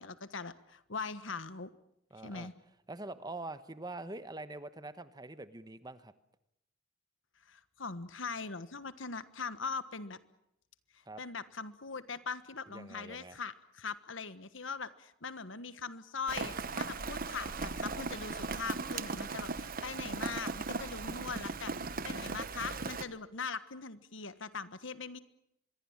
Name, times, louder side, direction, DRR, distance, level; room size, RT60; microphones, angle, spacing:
voice 1, 0.0-1.7 2.2-2.5 7.5-10.2 11.2-21.7 22.0-25.2, left 4 dB, 70° left, 13 dB, 1.4 m, -41 dB
voice 2, 2.1-2.5 2.9-6.1 11.0-11.2 12.7-13.4, right 2 dB, 20° right, 13 dB, 1.1 m, -44 dB
Rain, 16.3-23.0, right 4 dB, 45° right, 1.1 m, -38 dB
25.5 x 22.5 x 7.4 m, 0.78 s
head